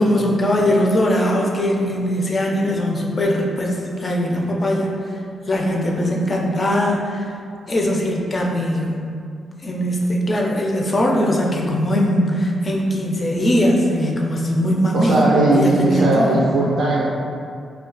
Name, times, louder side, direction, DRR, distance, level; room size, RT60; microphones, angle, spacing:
voice 1, 0.0-4.9 5.5-7.2 7.7-9.0 9.6-16.4, equal, 30° left, -1 dB, 0.4 m, -20 dB
voice 2, 14.9-17.1, right 2 dB, 85° right, -6 dB, 0.4 m, -18 dB
2.3 x 2.2 x 3.7 m, 2.3 s
cardioid pair, 120°, 0 cm